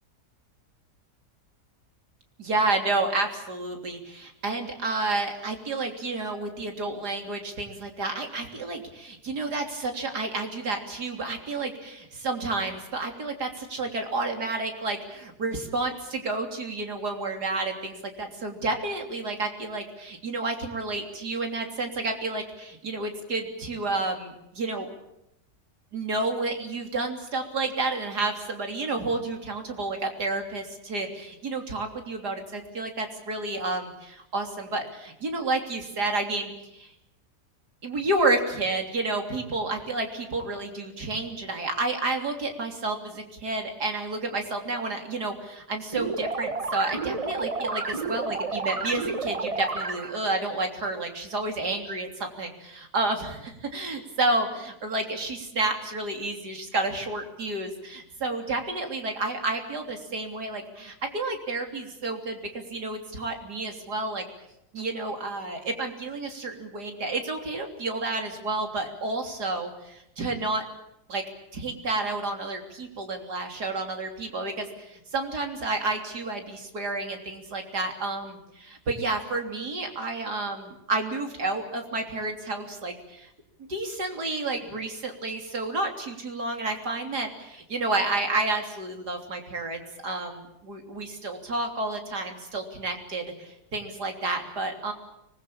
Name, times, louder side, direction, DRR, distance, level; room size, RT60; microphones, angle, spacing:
voice 1, 2.4-24.9 25.9-36.9 37.8-64.2 64.7-70.6 71.1-71.2 71.5-83.3 83.6-94.9, right 2 dB, 90° right, 4 dB, 3.8 m, -30 dB
sound 1, 45.9-50.3, right 3 dB, 25° right, 1.1 m, -31 dB
25.0 x 20.5 x 8.7 m, 0.86 s
omnidirectional pair, 1.7 m